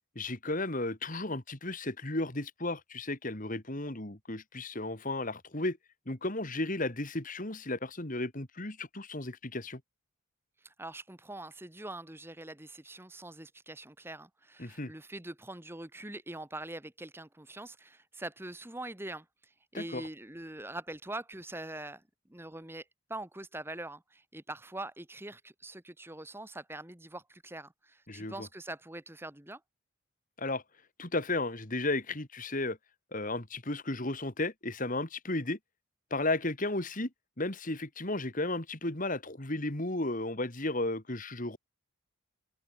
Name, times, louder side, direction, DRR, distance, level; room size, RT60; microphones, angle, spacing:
voice 1, 0.2-5.8 6.1-9.8 14.6-14.9 19.7-20.1 28.1-28.5 30.4-30.6 31.0-32.8 33.1-35.6 36.1-37.1 37.4-41.6, left 2 dB, 35° left, 2.4 m, -34 dB
voice 2, 10.6-22.0 22.3-29.6, right 2 dB, 10° right, 1.3 m, -43 dB
head